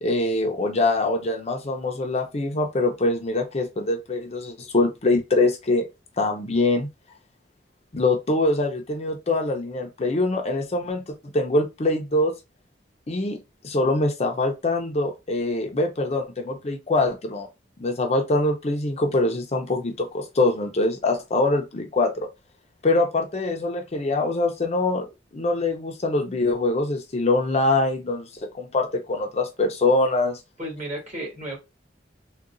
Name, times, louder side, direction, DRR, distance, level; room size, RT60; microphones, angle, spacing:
voice 1, 0.0-5.9 6.2-6.9 7.9-11.0 11.3-12.3 13.1-13.4 13.6-17.5 17.8-22.3 22.8-25.1 25.3-30.4, left 2 dB, 35° left, 0.5 m, -23 dB
voice 2, 30.6-31.6, right 1 dB, 40° right, 1.5 m, -33 dB
3.7 x 2.3 x 2.5 m
head